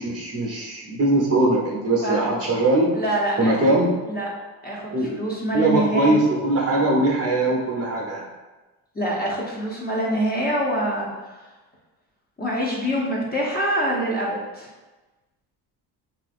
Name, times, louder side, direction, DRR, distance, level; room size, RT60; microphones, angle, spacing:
voice 1, 0.0-2.9 3.4-4.0 4.9-5.1 5.5-8.2, right 2 dB, 30° right, -3 dB, 0.9 m, -21 dB
voice 2, 2.0-2.4 2.9-3.7 4.1-4.3 4.6-6.2 8.9-11.4 12.4-14.7, right 1 dB, 20° left, -5 dB, 0.9 m, -25 dB
3.2 x 2.6 x 2.5 m, 1.2 s
supercardioid pair, 65°, 49 cm